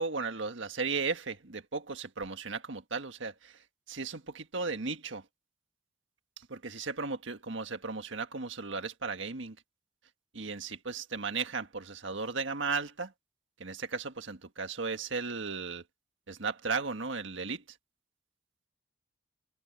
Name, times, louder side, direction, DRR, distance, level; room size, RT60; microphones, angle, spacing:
voice 1, 0.0-3.6 3.9-5.2 6.4-9.6 10.3-13.1 13.6-15.8 16.3-17.6, right 4 dB, 85° right, 1.6 m, -35 dB
head